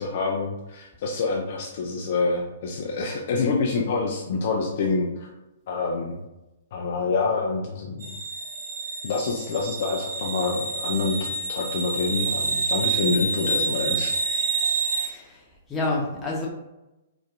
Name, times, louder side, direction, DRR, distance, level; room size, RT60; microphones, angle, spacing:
voice 1, 0.0-5.3 5.7-6.2 6.7-8.2 9.0-14.4, left 4 dB, 45° left, 0 dB, 0.4 m, -27 dB
sound 1, 8.0-15.1, right 4 dB, 65° right, 0.8 m, -28 dB
voice 2, 14.9-16.5, left 2 dB, 15° left, -3 dB, 0.8 m, -29 dB
3.9 x 2.4 x 2.3 m, 0.97 s
figure-of-eight pair, 115°, 0 cm